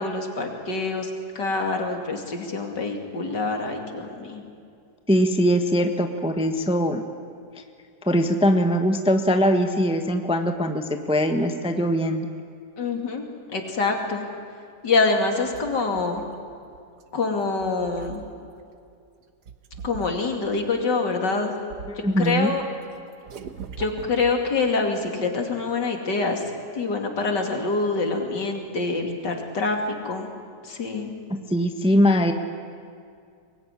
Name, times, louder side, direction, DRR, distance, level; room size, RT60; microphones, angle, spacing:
voice 1, 0.0-4.4 12.8-14.2 14.8-16.2 17.1-18.2 19.8-21.5 22.2-22.6 23.8-29.8 30.0-30.3 30.6-31.1, left 3 dB, 70° left, 3 dB, 3.2 m, -26 dB
voice 2, 5.1-7.0 8.0-12.3 22.0-22.5 31.3-32.3, equal, 5° right, 6 dB, 1.0 m, -21 dB
sound 1, 15.2-17.0 17.5-18.6 19.5-20.6 21.1-22.3 22.6-24.7, right 6 dB, 65° right, 1.6 m, -42 dB
24.0 x 20.5 x 9.9 m, 2.3 s
omnidirectional pair, 2.0 m